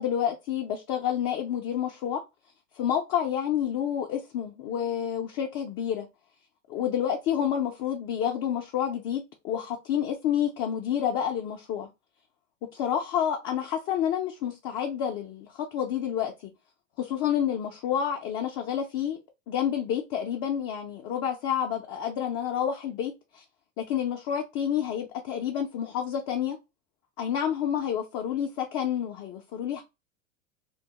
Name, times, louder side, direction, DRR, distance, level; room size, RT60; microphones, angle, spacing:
voice 1, 0.0-2.2 2.7-6.1 6.7-11.9 12.7-16.5 17.0-19.2 19.5-23.4 23.8-26.6 27.2-29.8, left 9 dB, 40° left, 0.5 m, -29 dB
2.2 x 2.0 x 2.8 m
hypercardioid pair, 100°, 39 cm